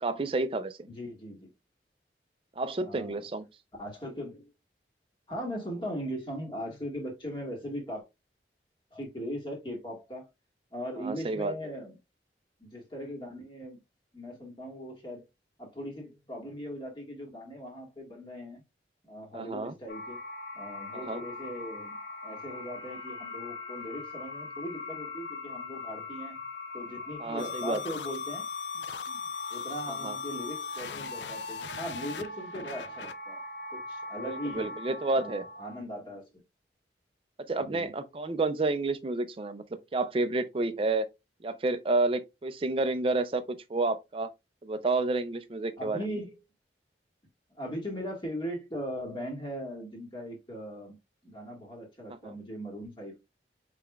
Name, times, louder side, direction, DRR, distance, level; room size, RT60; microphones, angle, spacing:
voice 1, 0.0-0.9 2.6-3.5 11.0-11.5 19.3-19.7 20.9-21.2 27.2-27.8 29.9-30.2 34.2-35.5 37.5-39.6 39.9-41.1 41.4-44.3 44.6-46.2 52.2-52.3, right 3 dB, 30° right, 0.4 m, -30 dB
voice 2, 0.9-1.5 2.8-3.2 3.8-4.5 5.3-8.0 8.9-10.3 10.7-12.0 12.6-13.8 14.1-15.2 15.6-18.6 19.1-20.2 20.5-22.0 22.2-26.4 26.7-28.5 28.7-29.2 29.5-33.4 33.7-34.7 35.2-36.2 37.6-37.9 45.8-46.3 47.5-51.0 51.2-53.2, equal, 25° left, 1.5 m, -39 dB
sound 1, 19.9-35.8, left 2 dB, 65° left, 1.2 m, -41 dB
sound 2, 27.4-33.1, left 6 dB, 85° left, 0.4 m, -39 dB
5.6 x 3.3 x 2.3 m
head